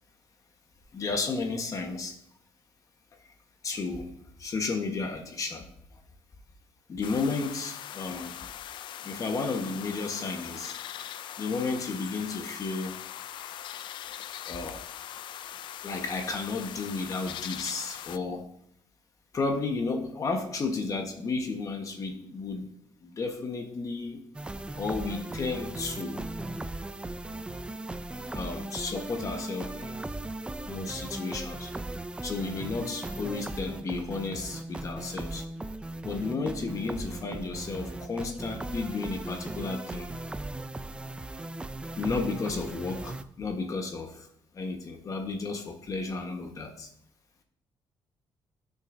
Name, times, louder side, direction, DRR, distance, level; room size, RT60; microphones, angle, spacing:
voice 1, 0.9-2.2 3.6-4.1 4.4-5.7 6.9-8.4 9.0-10.8 11.4-13.0 14.4-14.8 15.8-18.5 19.3-22.7 23.0-24.2 24.8-26.2 28.3-30.0 30.7-31.7 32.2-35.4 36.0-40.1 42.0-44.3 44.5-46.9, left 4 dB, 40° left, 3 dB, 1.3 m, -33 dB
sound 1, 7.0-18.2, left 11 dB, 65° left, 0.4 m, -41 dB
sound 2, 24.3-43.2, right 2 dB, 10° right, 0.4 m, -38 dB
12.5 x 6.5 x 2.7 m, 0.70 s
cardioid pair, 110°, 9 cm